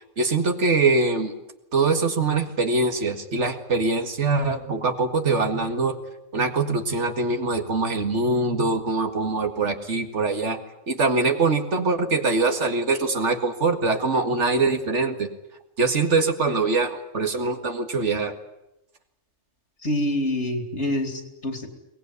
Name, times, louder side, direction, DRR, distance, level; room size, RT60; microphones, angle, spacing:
voice 1, 0.2-1.3 1.7-6.0 6.3-10.6 10.9-15.3 15.8-18.3, right 3 dB, 65° right, 7 dB, 2.2 m, -23 dB
voice 2, 19.8-21.7, left 1 dB, 60° left, 7 dB, 3.2 m, -26 dB
23.0 x 19.5 x 9.4 m, 0.89 s
omnidirectional pair, 1.3 m